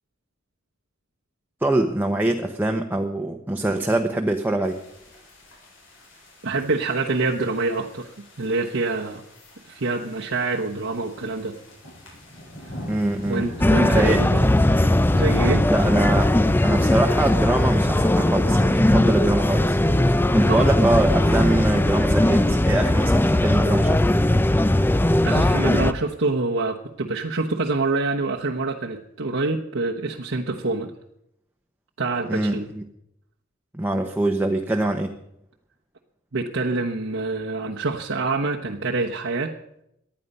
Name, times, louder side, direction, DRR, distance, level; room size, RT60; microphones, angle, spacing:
voice 1, 1.6-4.8 12.9-14.2 15.7-16.3 16.6-19.8 20.3-24.0 32.3-32.8 33.7-35.1, right 1 dB, 10° right, 3 dB, 0.9 m, -24 dB
sound 1, 4.6-16.9, left 1 dB, 85° left, 7.4 m, -42 dB
voice 2, 6.4-9.2 9.7-11.6 13.3-14.5 15.1-15.7 20.5-20.7 25.2-30.9 32.0-32.7 36.3-39.5, right 3 dB, 70° right, -1 dB, 1.1 m, -26 dB
sound 2, 13.6-25.9, left 1 dB, 10° left, 0.5 m, -19 dB
19.0 x 11.5 x 5.5 m, 0.80 s
head